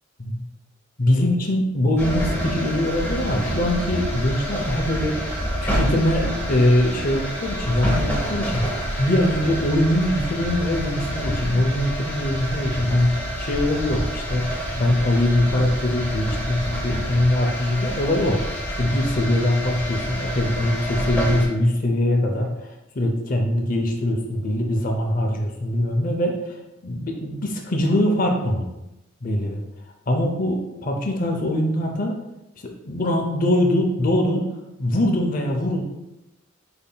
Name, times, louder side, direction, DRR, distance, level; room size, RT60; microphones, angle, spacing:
voice 1, 1.0-5.4 5.6-26.6 26.8-28.7 29.2-29.6 30.1-32.1 32.6-34.5 34.8-35.8, left 1 dB, 45° left, 2 dB, 0.6 m, -22 dB
sound 1, 2.0-21.5, equal, 10° left, 0.9 m, -28 dB
5.4 x 4.3 x 2.2 m, 0.95 s
head